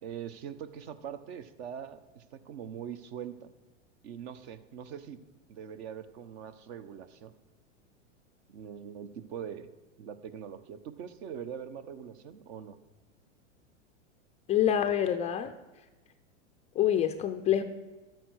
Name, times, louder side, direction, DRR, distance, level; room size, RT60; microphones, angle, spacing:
voice 1, 0.0-3.5 4.0-5.2 5.5-7.3 8.5-9.7 10.0-12.8, right 8 dB, 55° right, 11 dB, 1.1 m, -42 dB
voice 2, 14.5-15.5 16.8-17.6, left 10 dB, 20° left, 8 dB, 0.4 m, -26 dB
12.0 x 9.1 x 6.3 m, 1.2 s
hypercardioid pair, 125°, 37 cm